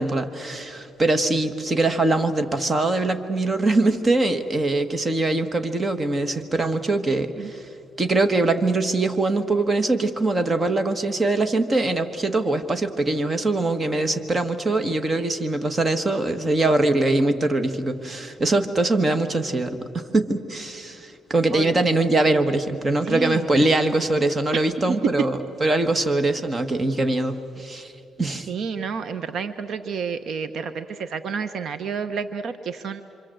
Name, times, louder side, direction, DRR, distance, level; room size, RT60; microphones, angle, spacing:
voice 1, 0.0-7.6 8.0-27.9 28.2-28.5, right 2 dB, 25° right, 8 dB, 1.5 m, -22 dB
voice 2, 23.0-23.5 24.9-25.0 28.5-33.0, right 5 dB, 60° right, 10 dB, 0.9 m, -30 dB
27.0 x 25.5 x 7.8 m, 2.6 s
cardioid pair, 120°, 0 cm